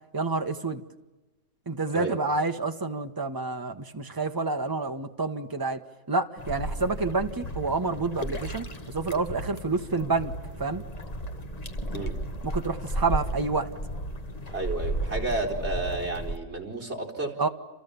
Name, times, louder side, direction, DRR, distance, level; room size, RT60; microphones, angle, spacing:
voice 1, 0.1-0.8 1.7-5.8 6.1-10.3 10.6-10.8 12.4-13.7 17.4-17.5, right 3 dB, 15° right, 6 dB, 1.2 m, -28 dB
sound 1, 6.4-16.4, right 1 dB, 25° left, 1.5 m, -34 dB
voice 2, 14.5-17.4, right 2 dB, 45° right, 0 dB, 4.5 m, -31 dB
29.5 x 28.0 x 7.1 m, 1.1 s
omnidirectional pair, 1.6 m